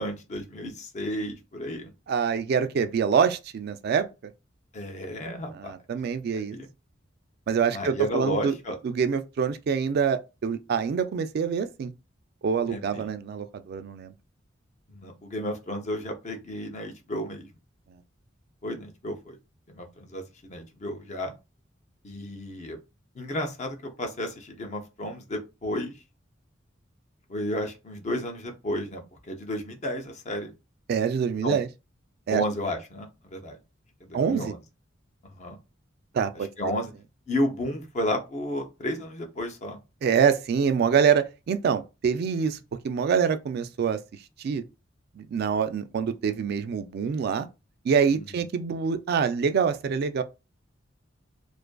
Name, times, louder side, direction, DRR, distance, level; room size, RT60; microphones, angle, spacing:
voice 1, 0.0-1.9 4.7-5.7 6.3-6.7 7.7-8.8 12.7-13.1 14.9-17.5 18.6-19.4 19.7-21.3 22.0-22.8 23.1-26.0 27.3-30.5 31.4-31.6 32.3-33.6 34.1-34.6 35.4-35.6 36.3-36.9 37.3-39.8 48.1-48.5, left 1 dB, 35° left, 0.6 m, -32 dB
voice 2, 2.1-4.1 5.6-6.6 7.5-8.5 8.8-11.9 12.4-14.1 30.9-31.7 32.3-32.4 34.1-34.5 36.1-36.5 40.0-42.6 42.8-44.0 44.4-44.6 45.2-47.5 47.9-50.2, right 6 dB, 55° right, 0.3 m, -25 dB
2.5 x 2.4 x 2.2 m
head